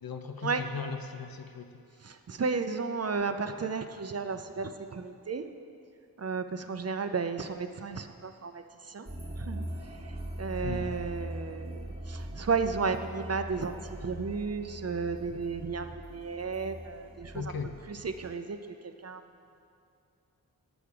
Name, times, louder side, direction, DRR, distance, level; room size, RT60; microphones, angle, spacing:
voice 1, 0.0-1.7 10.6-11.0 17.3-17.7, left 5 dB, 70° left, 7 dB, 0.6 m, -37 dB
voice 2, 2.0-5.4 6.2-9.1 9.4-9.7 10.4-17.5 17.9-18.6 18.8-19.2, right 4 dB, 45° right, 8 dB, 0.5 m, -33 dB
sound 1, 9.1-18.3, right 1 dB, 15° right, 1.5 m, -41 dB
8.5 x 7.0 x 4.7 m, 2.5 s
wide cardioid pair, 55°, 37 cm